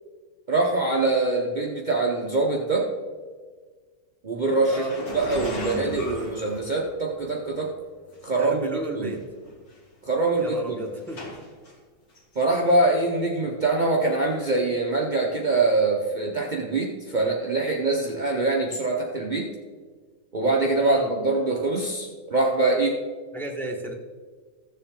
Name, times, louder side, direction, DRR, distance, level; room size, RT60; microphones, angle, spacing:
voice 1, 0.5-2.9 4.2-7.7 8.2-9.1 10.0-10.8 12.4-19.5 20.3-23.0, right 2 dB, 65° right, -1 dB, 0.4 m, -24 dB
sound 1, 4.7-7.3 8.1-8.2 9.1-9.2 9.5-9.8 10.4-11.7 12.1-12.7 13.0-13.1 14.3-14.4, left 1 dB, 45° left, 2.3 m, -36 dB
voice 2, 8.4-9.2 10.4-11.4 20.7-21.1 23.3-23.9, right 2 dB, ahead, 0 dB, 0.8 m, -34 dB
15.0 x 7.2 x 3.7 m, 1.5 s
omnidirectional pair, 2.2 m